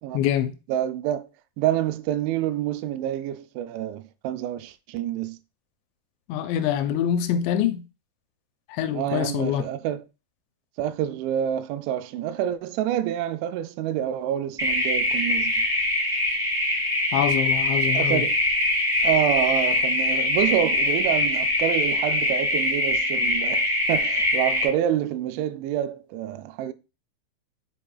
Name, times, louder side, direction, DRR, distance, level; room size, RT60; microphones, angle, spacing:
voice 1, 0.1-0.5 6.3-7.8 8.7-9.7 17.1-18.2, left 10 dB, 85° left, 2.9 m, -25 dB
voice 2, 0.7-1.3 1.6-5.4 8.9-10.0 10.8-15.7 17.9-18.4 19.0-26.7, right 11 dB, 85° right, 2.9 m, -27 dB
sound 1, 14.6-24.6, left 1 dB, 30° right, 0.4 m, -23 dB
7.2 x 6.0 x 2.3 m
omnidirectional pair, 5.2 m